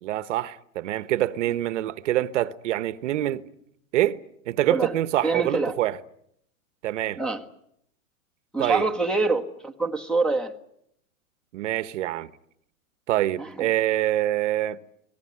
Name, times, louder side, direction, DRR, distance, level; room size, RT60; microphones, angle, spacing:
voice 1, 0.0-3.5 3.9-4.2 4.5-5.9 6.8-7.2 8.6-8.8 11.5-12.3 13.1-14.8, right 14 dB, 55° right, 1.2 m, -25 dB
voice 2, 5.2-5.8 7.2-7.4 8.5-10.5 13.4-13.7, right 3 dB, ahead, 1.4 m, -25 dB
24.0 x 19.0 x 9.8 m
hypercardioid pair, 140°, 42 cm